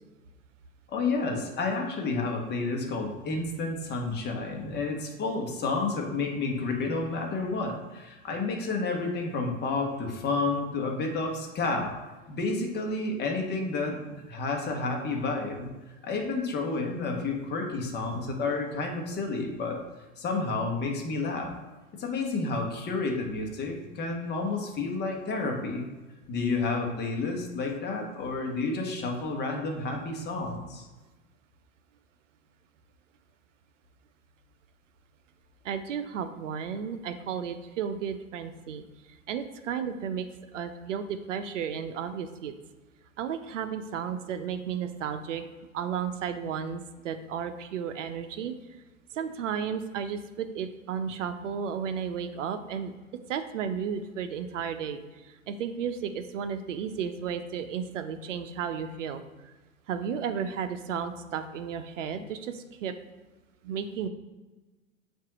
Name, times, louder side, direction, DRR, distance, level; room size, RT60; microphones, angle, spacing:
voice 1, 0.9-11.9 12.3-14.0 14.3-15.7 16.0-19.8 20.2-21.5 21.9-25.9 26.3-30.9, left 3 dB, 25° left, 2 dB, 1.2 m, -30 dB
voice 2, 35.6-38.8 39.3-40.3 40.5-42.5 43.2-45.5 45.7-48.5 49.1-52.9 53.3-59.5 59.9-62.9 63.6-64.1, right 7 dB, 65° right, 9 dB, 0.7 m, -33 dB
7.3 x 2.7 x 4.9 m, 1.2 s
figure-of-eight pair, 95°, 40 cm